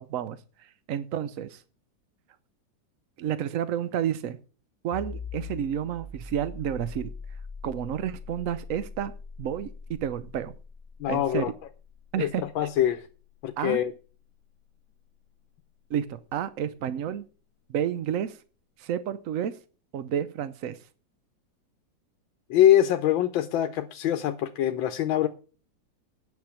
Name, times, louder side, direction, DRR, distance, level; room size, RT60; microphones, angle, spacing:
voice 1, 0.0-1.6 3.2-4.4 4.8-7.1 7.6-9.1 9.4-10.5 11.1-11.5 12.1-12.7 13.6-13.8 15.9-17.3 17.7-18.4 18.8-19.6 19.9-20.8, right 9 dB, 70° right, 0.8 m, -30 dB
sound 1, 4.9-16.3, left 4 dB, 30° left, 1.2 m, -43 dB
voice 2, 11.0-11.5 12.2-13.0 13.4-13.9 22.5-25.3, left 11 dB, 85° left, 1.5 m, -24 dB
9.6 x 6.6 x 6.9 m
omnidirectional pair, 2.1 m